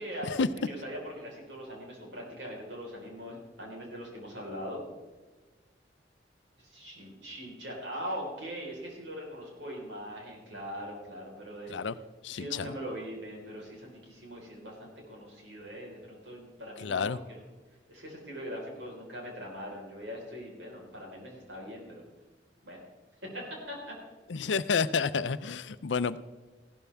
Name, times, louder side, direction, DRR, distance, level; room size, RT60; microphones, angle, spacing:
voice 1, 0.0-4.8 6.6-11.7 12.3-17.4 17.9-22.0 22.6-22.8 23.2-24.0, equal, 75° right, -1 dB, 4.4 m, -41 dB
voice 2, 12.2-12.7 16.8-17.2 24.3-26.2, left 5 dB, 80° left, 15 dB, 0.5 m, -30 dB
15.0 x 12.5 x 3.5 m, 1.3 s
head